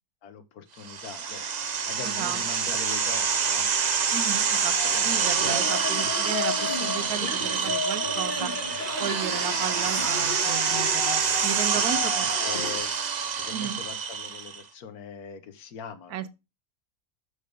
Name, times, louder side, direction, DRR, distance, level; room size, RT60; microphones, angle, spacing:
voice 1, 0.2-3.7 4.7-4.8 11.3-11.4 12.4-12.9 13.4-16.3, left 6 dB, 80° left, 1.5 m, -42 dB
sound 1, 0.8-14.6, right 6 dB, 55° right, 0.4 m, -27 dB
voice 2, 2.0-2.4 4.1-8.5 9.0-12.3 13.5-13.8 16.1-16.3, right 10 dB, 85° right, 1.2 m, -34 dB
sound 2, 4.1-7.8, left 4 dB, ahead, 0.9 m, -48 dB
sound 3, 4.9-12.8, left 4 dB, 30° left, 2.2 m, -34 dB
6.5 x 5.0 x 5.2 m
omnidirectional pair, 1.6 m